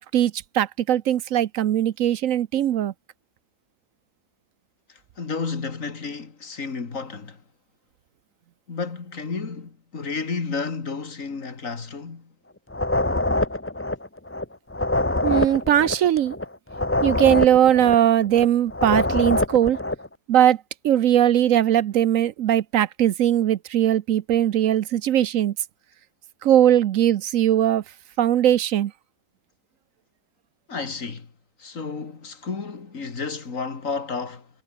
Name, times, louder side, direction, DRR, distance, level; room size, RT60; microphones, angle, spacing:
voice 1, 0.0-2.9 15.2-16.4 17.0-19.8 20.3-25.5 26.4-27.8 28.2-28.9, right 11 dB, 65° right, 1.0 m, -20 dB
voice 2, 4.9-7.4 8.7-12.3 30.7-31.3 31.6-34.5, left 4 dB, 55° left, 2.6 m, -32 dB
sound 1, 12.7-20.1, left 2 dB, 10° left, 0.7 m, -25 dB
omnidirectional pair, 1.7 m